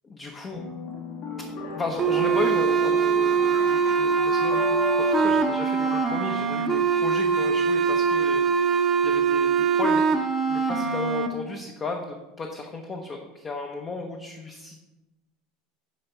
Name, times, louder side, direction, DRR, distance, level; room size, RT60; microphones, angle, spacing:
voice 1, 0.0-0.6 1.7-10.1 10.5-14.9, left 3 dB, 20° left, 3 dB, 0.7 m, -34 dB
sound 1, 0.5-7.5, left 4 dB, 55° left, 1.4 m, -35 dB
sound 2, 2.0-11.3, right 6 dB, 20° right, 0.7 m, -23 dB
9.4 x 3.4 x 5.4 m, 1.1 s
supercardioid pair, 155°, 0 cm